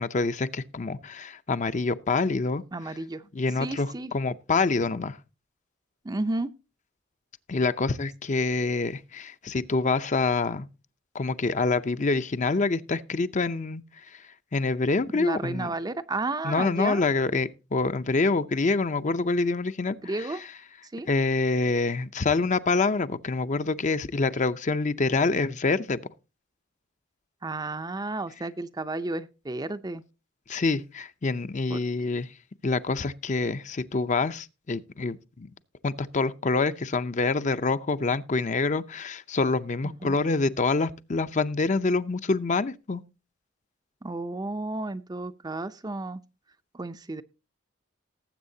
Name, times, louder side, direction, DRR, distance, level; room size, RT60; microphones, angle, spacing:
voice 1, 0.0-2.6 3.3-5.2 7.5-10.7 11.1-13.8 14.5-15.7 16.4-20.3 21.1-26.0 30.5-32.3 32.6-35.5 35.8-43.0, left 3 dB, 40° left, 0.6 m, -26 dB
voice 2, 2.7-3.2 3.6-4.1 6.0-6.5 15.1-17.0 20.0-20.4 20.8-21.1 27.4-30.0 31.7-31.8 39.8-40.2 44.0-46.2 46.7-47.2, right 2 dB, 20° right, 0.5 m, -32 dB
19.0 x 7.9 x 2.7 m
head